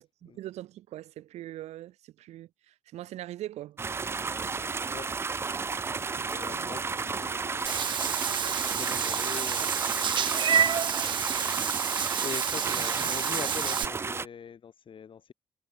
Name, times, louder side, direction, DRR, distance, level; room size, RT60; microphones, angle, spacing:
voice 1, 0.0-3.8 6.1-6.7, right 14 dB, 80° right, 2.0 m, -42 dB
sound 1, 3.8-14.3, right 4 dB, 20° right, 0.3 m, -33 dB
voice 2, 5.8-8.4 8.7-11.8 12.2-15.3, left 7 dB, 50° left, 3.8 m, -44 dB
Meow / Water / Bathtub (filling or washing), 7.6-13.8, right 8 dB, 45° right, 0.7 m, -29 dB
cardioid pair, 85°, 11 cm